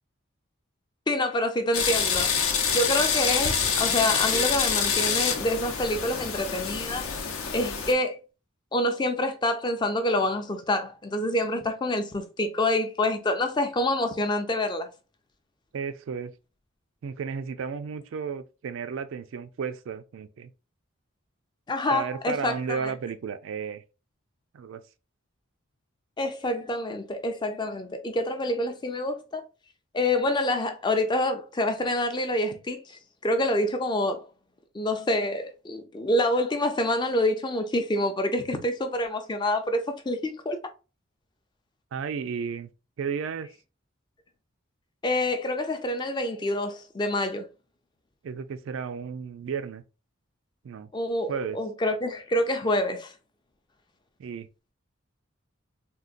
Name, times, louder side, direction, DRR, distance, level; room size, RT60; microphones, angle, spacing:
voice 1, 1.1-2.3 2.7-7.1 7.5-8.2 8.7-14.9 21.7-22.8 26.2-29.4 29.9-34.3 34.7-40.6 45.0-47.4 50.9-53.1, left 1 dB, 20° left, 0.4 m, -27 dB
sound 1, 1.7-7.9, left 6 dB, 80° left, 0.6 m, -26 dB
voice 2, 15.7-16.3 17.0-20.5 21.9-23.8 24.5-24.8 41.9-42.7 43.0-43.5 48.2-49.8 50.6-50.9 51.3-51.6 54.2-54.5, right 6 dB, 65° right, 0.3 m, -33 dB
3.8 x 2.2 x 2.4 m
head